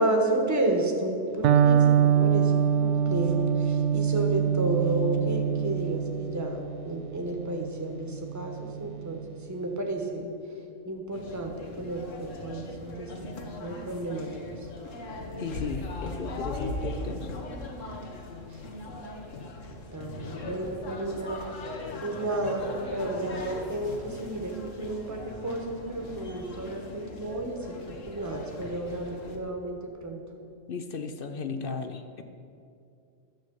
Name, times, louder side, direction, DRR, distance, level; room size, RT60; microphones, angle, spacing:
voice 1, 0.0-2.5 2.8-9.2 9.5-10.3 10.8-13.1 13.4-14.3 19.9-21.4 22.0-30.2, right 1 dB, 15° right, 2 dB, 1.2 m, -31 dB
Electric guitar, 1.4-9.3, right 8 dB, 75° right, 0.9 m, -25 dB
sound 1, 11.1-29.4, left 2 dB, 80° left, 1.5 m, -39 dB
voice 2, 15.4-17.3 30.7-32.2, left 4 dB, 55° left, 7 dB, 0.8 m, -35 dB
11.5 x 6.7 x 8.0 m, 2.5 s
omnidirectional pair, 1.3 m